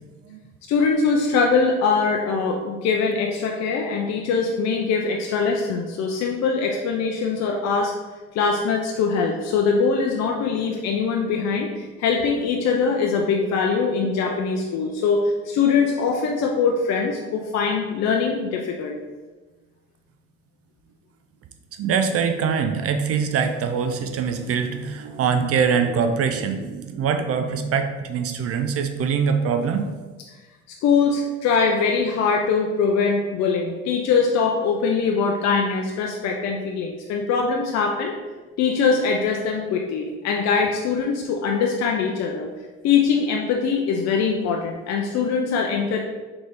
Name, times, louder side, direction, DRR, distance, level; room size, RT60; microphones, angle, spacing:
voice 1, 0.7-7.9 8.3-19.0 30.8-38.1 38.6-42.5 42.8-46.0, left 5 dB, 60° left, 1 dB, 0.5 m, -22 dB
voice 2, 21.8-29.9, right 6 dB, 55° right, 6 dB, 0.5 m, -23 dB
3.8 x 3.4 x 3.4 m, 1.3 s
supercardioid pair, 75°, 29 cm